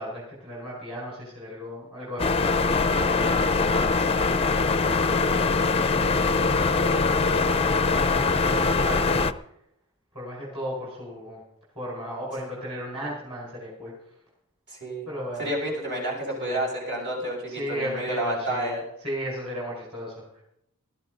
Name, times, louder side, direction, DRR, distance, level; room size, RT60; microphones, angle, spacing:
voice 1, 0.0-6.1 6.5-8.6 8.8-9.0 10.1-11.4 11.8-13.9 15.1-15.5 16.4-16.6 17.5-18.7 19.0-20.4, equal, 25° right, -6 dB, 5.2 m, -36 dB
sound 1, 2.2-9.3, left 4 dB, 25° left, 0.5 m, -22 dB
voice 2, 14.7-15.1 15.4-18.8, right 1 dB, 50° right, -2 dB, 7.1 m, -30 dB
19.5 x 13.5 x 4.0 m, 0.79 s
head